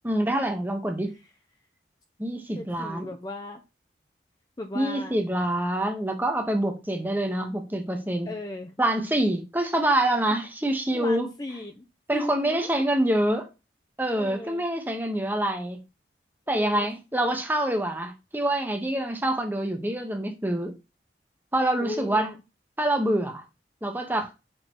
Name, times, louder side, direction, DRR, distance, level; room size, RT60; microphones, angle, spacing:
voice 1, 0.0-1.2 2.2-3.1 4.7-8.3 8.8-11.3 12.1-13.5 14.0-15.8 16.5-20.7 21.5-22.3 22.8-23.4 23.8-24.3, right 1 dB, 10° right, 0.9 m, -26 dB
voice 2, 2.6-3.6 4.6-5.1 8.3-8.7 10.9-11.8 12.1-12.8 14.2-14.6 16.5-16.9 21.8-22.4, left 2 dB, 20° left, 0.6 m, -36 dB
6.3 x 3.8 x 4.4 m
head